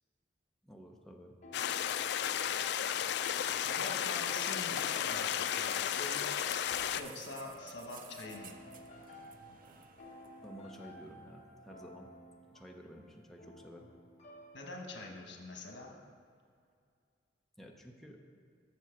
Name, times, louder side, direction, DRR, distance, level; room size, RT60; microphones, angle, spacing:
voice 1, 0.6-1.4 10.4-12.1 12.5-13.9 17.6-18.2, equal, ahead, 0 dB, 0.7 m, -52 dB
sound 1, 1.4-15.1, left 1 dB, 40° left, 1.4 m, -54 dB
sound 2, 1.5-7.0, left 9 dB, 65° left, 0.3 m, -33 dB
voice 2, 3.5-6.2 6.9-8.6 14.5-15.9, left 2 dB, 80° left, 2 dB, 1.2 m, -45 dB
sound 3, 4.2-12.1 13.1-13.2, right 6 dB, 50° right, 0.6 m, -55 dB
7.4 x 6.8 x 5.8 m, 2.3 s
head